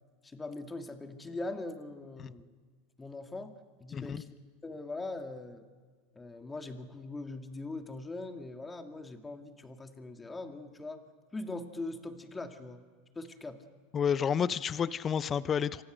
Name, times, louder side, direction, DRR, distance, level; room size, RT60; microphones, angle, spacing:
voice 1, 0.2-2.5 3.0-3.5 3.8-4.3 4.6-5.6 6.2-11.0 11.3-12.8 13.1-13.6, left 2 dB, 15° left, 5 dB, 2.5 m, -41 dB
voice 2, 13.9-15.8, left 7 dB, 30° left, 16 dB, 0.7 m, -30 dB
26.5 x 25.5 x 6.4 m, 1.5 s
hypercardioid pair, 95°, 0 cm